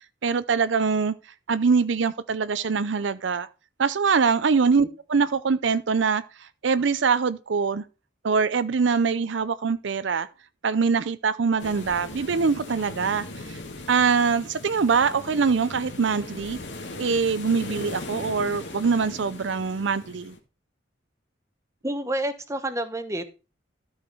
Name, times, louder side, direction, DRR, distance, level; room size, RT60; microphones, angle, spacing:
voice 1, 0.2-1.1 1.5-3.5 3.8-7.8 8.2-10.3 10.6-13.6 13.9-16.6 17.0-20.3, right 5 dB, 70° right, 0.5 m, -23 dB
sound 1, 11.6-20.4, left 2 dB, 65° left, 2.0 m, -39 dB
voice 2, 21.8-23.3, right 1 dB, 15° right, 1.1 m, -29 dB
13.0 x 4.9 x 5.4 m
head